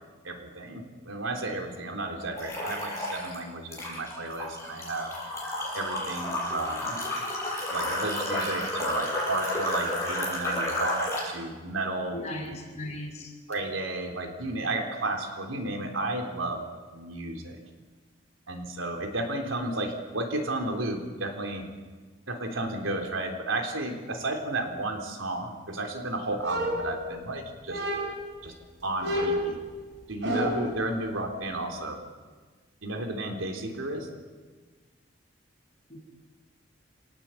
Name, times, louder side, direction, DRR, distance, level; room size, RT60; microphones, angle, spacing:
voice 1, 0.2-5.1 5.7-7.0 7.7-12.2 13.5-16.6 16.9-17.6 18.5-21.7 22.3-27.8 28.4-28.5 28.8-29.6 30.1-32.0 32.8-34.1, right 2 dB, 85° right, 3 dB, 3.8 m, -33 dB
sound 1, 2.4-3.4 3.7-11.3, left 1 dB, 15° left, 7.4 m, -31 dB
voice 2, 12.1-13.3 35.9-36.0, left 1 dB, 35° left, 1 dB, 5.9 m, -37 dB
sound 2, 26.4-27.3 27.7-28.3 29.0-30.8, equal, 60° right, 5.8 m, -30 dB
27.5 x 18.5 x 8.6 m, 1.4 s
head